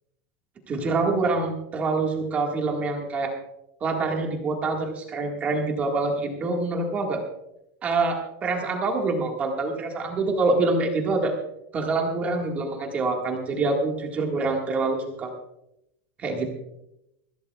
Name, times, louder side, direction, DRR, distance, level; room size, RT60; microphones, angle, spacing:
voice 1, 0.7-3.3 3.8-7.2 7.8-11.3 11.7-15.3 16.2-16.5, right 3 dB, 20° right, 1 dB, 1.7 m, -26 dB
22.0 x 16.0 x 2.3 m, 0.84 s
supercardioid pair, 175°, 7 cm